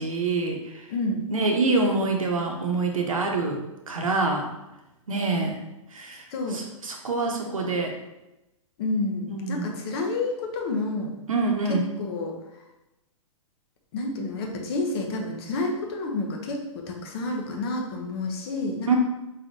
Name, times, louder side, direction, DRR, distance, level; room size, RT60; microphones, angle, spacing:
voice 1, 0.0-0.8 1.3-3.6 3.9-4.5 5.1-5.6 5.9-6.2 6.5-7.9 9.3-9.7 11.3-11.8 18.9-19.0, right 3 dB, 85° right, 2 dB, 0.8 m, -25 dB
voice 2, 0.9-1.2 6.3-6.6 8.8-11.1 12.0-12.4 13.9-19.0, left 2 dB, 50° left, 1 dB, 0.8 m, -29 dB
4.1 x 3.3 x 2.7 m, 0.95 s
hypercardioid pair, 115°, 17 cm